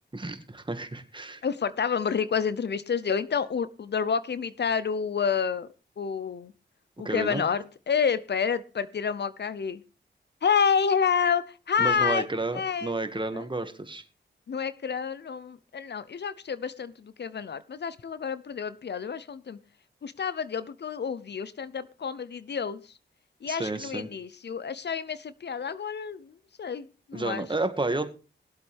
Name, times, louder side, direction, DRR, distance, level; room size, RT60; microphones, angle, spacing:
voice 1, 0.1-1.4 7.0-7.4 11.8-14.0 23.5-24.1 27.1-28.1, right 2 dB, 25° right, 1.9 m, -31 dB
voice 2, 1.4-5.7 6.0-6.5 7.0-9.8 10.4-12.3 12.5-13.0 13.3-13.4 14.5-19.6 20.0-22.9 23.4-27.5, left 6 dB, 65° left, 0.7 m, -29 dB
20.5 x 8.0 x 3.5 m
cardioid pair, 65°, 19 cm